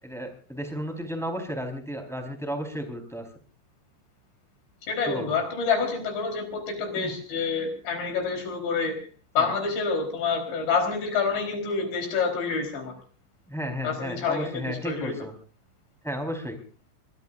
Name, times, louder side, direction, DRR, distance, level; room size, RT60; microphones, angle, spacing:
voice 1, 0.0-3.3 5.1-5.3 6.9-7.1 9.4-9.5 13.5-15.3 16.0-16.6, equal, ahead, 3 dB, 3.6 m, -33 dB
voice 2, 4.9-9.0 9.4-12.9 13.8-15.2, left 5 dB, 65° left, 4 dB, 6.4 m, -27 dB
23.0 x 22.5 x 2.6 m, 0.39 s
omnidirectional pair, 5.6 m